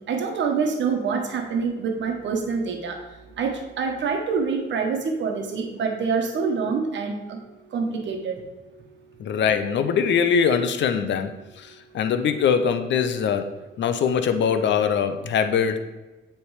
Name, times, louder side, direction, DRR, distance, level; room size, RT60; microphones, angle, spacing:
voice 1, 0.1-3.0 3.4-7.4 7.7-8.4, right 5 dB, 65° right, 3 dB, 1.2 m, -26 dB
voice 2, 9.2-15.8, left 7 dB, 65° left, 9 dB, 0.7 m, -22 dB
8.0 x 3.4 x 4.8 m, 1.1 s
cardioid pair, 90°, 20 cm